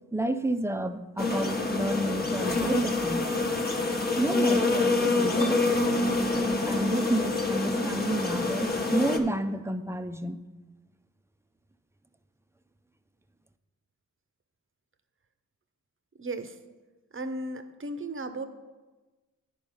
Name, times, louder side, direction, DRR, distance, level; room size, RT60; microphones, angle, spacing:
voice 1, 0.1-3.3 4.2-5.6 6.3-10.4, right 1 dB, 10° right, 9 dB, 0.6 m, -30 dB
sound 1, 1.2-9.2, left 2 dB, 30° left, 1.1 m, -26 dB
voice 2, 16.2-16.6 17.1-18.5, right 2 dB, 40° right, 10 dB, 0.8 m, -35 dB
10.0 x 4.5 x 5.5 m, 1.2 s
cardioid pair, 40°, 32 cm